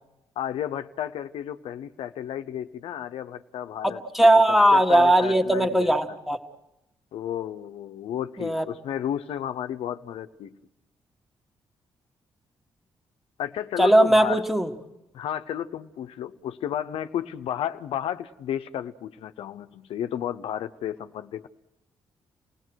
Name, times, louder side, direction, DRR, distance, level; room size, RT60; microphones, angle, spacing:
voice 1, 0.4-4.0 4.7-6.0 7.1-10.6 13.4-14.4 15.1-21.5, left 10 dB, 90° left, 10 dB, 0.8 m, -32 dB
voice 2, 3.8-6.4 8.4-8.6 13.8-14.7, right 1 dB, ahead, 5 dB, 1.8 m, -19 dB
29.0 x 18.5 x 6.4 m, 0.92 s
cardioid pair, 115°, 9 cm